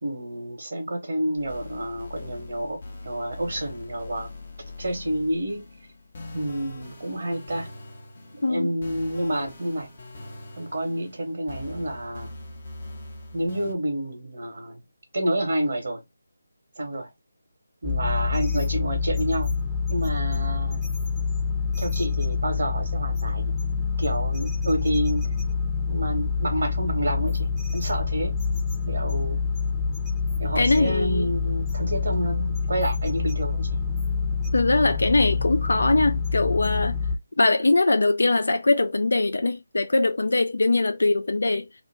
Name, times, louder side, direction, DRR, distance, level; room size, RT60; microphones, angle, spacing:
voice 1, 0.0-4.3 4.8-5.6 6.3-7.7 8.3-9.9 10.6-12.3 13.3-14.8 15.1-16.0 16.8-17.1 17.8-19.5 19.9-20.8 21.8-23.5 24.0-25.2 25.9-28.4 28.8-29.4 30.4-33.8, right 1 dB, 65° right, 0.9 m, -29 dB
sound 1, 1.4-13.7, left 2 dB, 45° left, 0.8 m, -42 dB
sound 2, 17.8-37.2, left 5 dB, 10° left, 0.7 m, -26 dB
voice 2, 30.6-31.3 34.5-37.0 37.4-41.7, left 2 dB, 70° left, 0.3 m, -21 dB
2.5 x 2.0 x 3.2 m
figure-of-eight pair, 155°, 0 cm